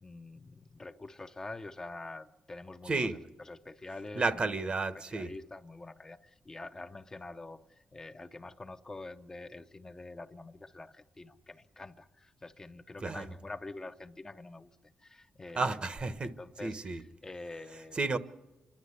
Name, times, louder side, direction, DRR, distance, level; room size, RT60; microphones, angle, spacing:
voice 1, 0.0-4.5 4.9-15.8 16.2-18.2, left 2 dB, 20° left, 7 dB, 0.7 m, -46 dB
voice 2, 2.9-3.2 4.2-5.3 13.0-13.2 15.5-16.3 16.6-17.0 17.9-18.2, right 3 dB, 35° right, 12 dB, 1.0 m, -31 dB
27.0 x 11.5 x 9.7 m, 1.1 s
wide cardioid pair, 125°, 3 cm